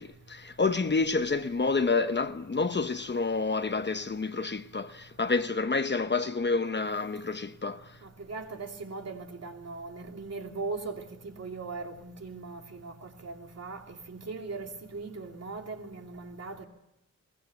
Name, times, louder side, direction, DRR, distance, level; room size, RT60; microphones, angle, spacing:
voice 1, 0.0-8.0, left 4 dB, 35° left, 0.9 m, -29 dB
voice 2, 8.0-16.7, right 3 dB, 55° right, 2.8 m, -39 dB
22.5 x 21.0 x 8.0 m
wide cardioid pair, 150°, 30 cm